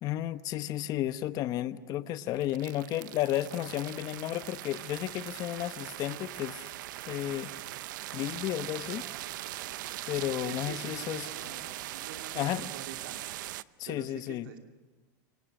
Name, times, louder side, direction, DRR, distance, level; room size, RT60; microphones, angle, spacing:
voice 1, 0.0-6.6 7.1-7.5 8.1-9.0 10.1-11.3 12.3-12.7 13.8-14.5, left 13 dB, 35° left, 12 dB, 1.0 m, -33 dB
sound 1, 2.2-13.6, right 16 dB, 70° right, 0.7 m, -41 dB
sound 2, 7.8-12.0, right 1 dB, 15° right, 4.4 m, -59 dB
voice 2, 10.4-13.2 13.8-14.6, right 7 dB, 90° right, 4 dB, 2.7 m, -46 dB
28.0 x 24.5 x 6.3 m, 1.2 s
supercardioid pair, 145°, 11 cm